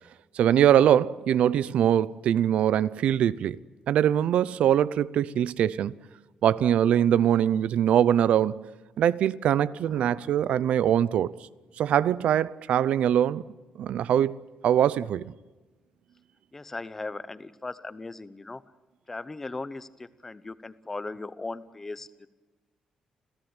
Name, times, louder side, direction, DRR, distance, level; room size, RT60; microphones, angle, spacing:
voice 1, 0.4-3.6 3.9-5.9 6.4-8.7 9.0-11.3 11.8-13.4 13.8-14.4 14.6-15.3, right 10 dB, 65° right, 0.7 m, -22 dB
voice 2, 9.9-10.3 16.5-18.6 19.1-22.3, left 3 dB, 15° left, 0.8 m, -38 dB
28.5 x 16.5 x 9.0 m
cardioid pair, 175°, 2 cm